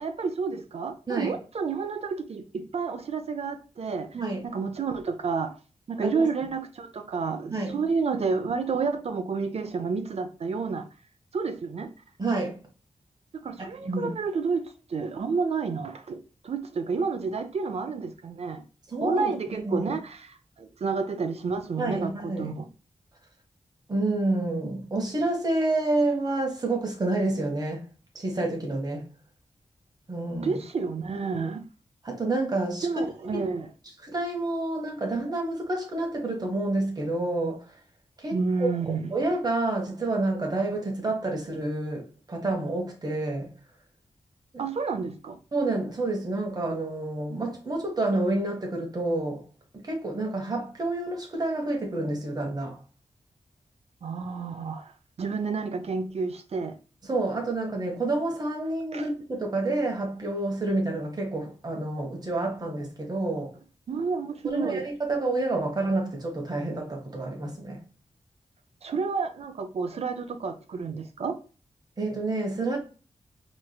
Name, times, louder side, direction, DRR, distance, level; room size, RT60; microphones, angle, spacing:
voice 1, 0.0-4.1 4.5-5.6 5.9-10.9 11.3-11.9 13.4-18.6 19.0-20.3 20.6-22.7 30.4-31.6 32.8-33.7 38.3-39.2 44.6-45.4 54.0-54.9 55.2-56.7 58.9-59.1 63.9-64.8 68.8-71.4, right 5 dB, 60° right, 0.6 m, -30 dB
voice 2, 4.1-4.5 6.0-6.2 7.5-7.8 12.2-12.6 13.8-14.1 18.9-19.9 21.8-22.6 23.9-27.8 28.1-29.1 30.1-30.6 32.0-33.1 33.3-33.4 34.0-37.7 38.2-43.6 44.5-44.6 45.5-49.5 49.7-52.8 57.1-63.5 64.4-67.8 72.0-72.8, right 2 dB, 35° right, 1.3 m, -29 dB
4.5 x 3.2 x 2.3 m
wide cardioid pair, 140°, 12 cm